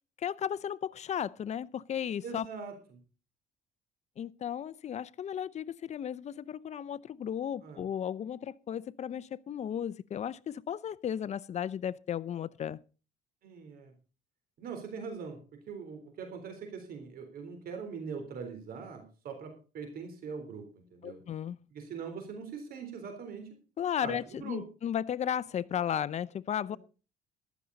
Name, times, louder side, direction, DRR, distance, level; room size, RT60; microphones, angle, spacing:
voice 1, 0.2-2.5 4.2-12.8 21.0-21.6 23.8-26.8, left 9 dB, 40° left, 0.6 m, -35 dB
voice 2, 2.2-3.0 7.6-7.8 13.4-13.9 14.6-15.4 15.7-21.2 21.7-23.6 24.0-24.6, right 5 dB, 60° right, 3.7 m, -42 dB
14.5 x 12.0 x 4.0 m
cardioid pair, 110°, 17 cm